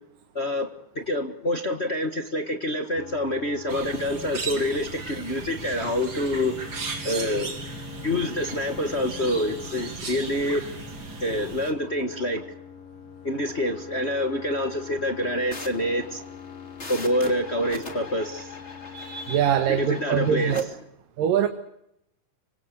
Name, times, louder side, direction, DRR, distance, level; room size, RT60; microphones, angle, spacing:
voice 1, 0.3-0.7 0.9-6.5 7.0-7.5 8.0-10.7 11.2-12.4 13.2-16.3 16.9-18.6 19.7-20.5, left 1 dB, 45° left, 0.8 m, -27 dB
sound 1, 3.0-19.9, left 9 dB, 90° left, 3.2 m, -44 dB
sound 2, 3.7-11.7, right 4 dB, 35° right, 3.1 m, -36 dB
sound 3, 15.5-20.6, left 3 dB, 20° left, 2.7 m, -41 dB
voice 2, 18.9-20.6 21.2-21.5, right 9 dB, 80° right, 2.9 m, -23 dB
26.0 x 25.0 x 6.7 m
omnidirectional pair, 3.9 m